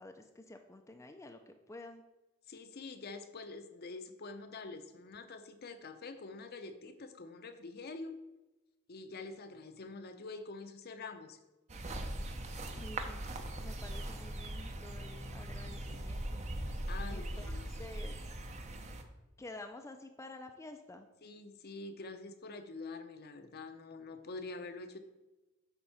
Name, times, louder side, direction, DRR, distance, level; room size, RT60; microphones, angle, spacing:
voice 1, 0.0-2.0 12.7-13.2 13.6-16.4 17.1-18.2 19.4-21.1, left 2 dB, 15° left, 5 dB, 0.4 m, -50 dB
voice 2, 2.5-8.2 8.9-11.4 16.9-17.7 21.2-25.0, left 3 dB, 50° left, 9 dB, 0.7 m, -46 dB
sound 1, 11.7-19.0, right 1 dB, 35° right, 0.7 m, -40 dB
8.9 x 3.7 x 5.6 m, 1.1 s
head